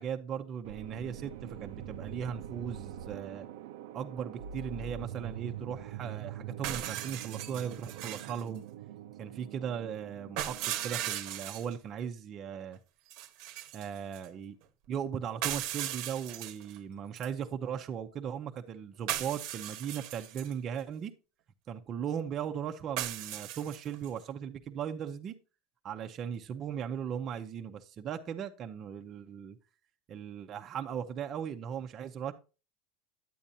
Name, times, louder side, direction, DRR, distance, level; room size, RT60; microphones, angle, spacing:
voice 1, 0.0-3.5 3.9-8.6 9.2-12.8 13.7-14.6 14.9-21.1 21.7-25.3 25.8-29.6 30.1-32.3, right 8 dB, 35° right, 0.7 m, -38 dB
sound 1, 0.6-11.1, right 9 dB, 80° right, 0.6 m, -44 dB
sound 2, 6.6-8.4 10.4-11.7 13.1-14.3 15.4-16.8 17.2-17.3 19.1-20.5 23.0-24.1, right 12 dB, 60° right, 1.0 m, -37 dB
9.4 x 8.7 x 2.7 m
supercardioid pair, 140°, 0 cm